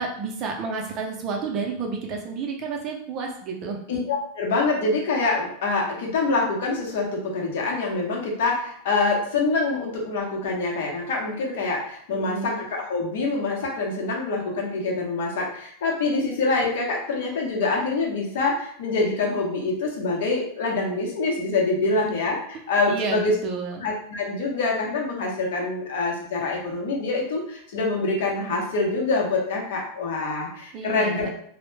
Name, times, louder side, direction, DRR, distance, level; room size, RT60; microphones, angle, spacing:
voice 1, 0.0-3.8 12.1-12.6 21.9-22.0 22.9-23.8 30.7-31.3, right 4 dB, 35° right, 1 dB, 0.5 m, -30 dB
voice 2, 3.9-23.3 23.8-31.3, left 3 dB, 75° left, -1 dB, 0.8 m, -25 dB
2.1 x 2.1 x 3.1 m, 0.63 s
supercardioid pair, 155°, 0 cm